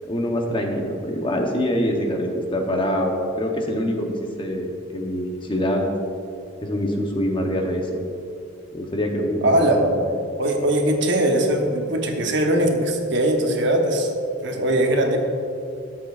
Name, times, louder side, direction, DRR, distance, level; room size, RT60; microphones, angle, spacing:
voice 1, 0.1-5.9 6.6-7.9 8.7-9.9, equal, 25° left, 2 dB, 0.8 m, -25 dB
voice 2, 9.4-9.9 10.4-14.1 14.4-15.2, right 1 dB, 60° right, 2 dB, 1.0 m, -20 dB
13.5 x 7.6 x 2.4 m, 2.6 s
head